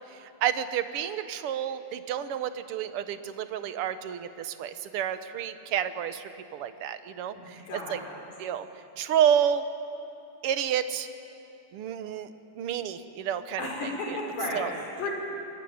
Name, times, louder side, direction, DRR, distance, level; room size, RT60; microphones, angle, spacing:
voice 1, 0.1-8.0 8.4-8.7 9.0-9.6 10.4-11.1 11.7-12.3 12.6-14.2 14.5-14.7, right 9 dB, 60° right, 10 dB, 1.6 m, -30 dB
voice 2, 7.3-8.2 13.6-15.1, left 2 dB, 75° left, -2 dB, 6.3 m, -34 dB
25.0 x 22.5 x 9.6 m, 2.9 s
omnidirectional pair, 3.5 m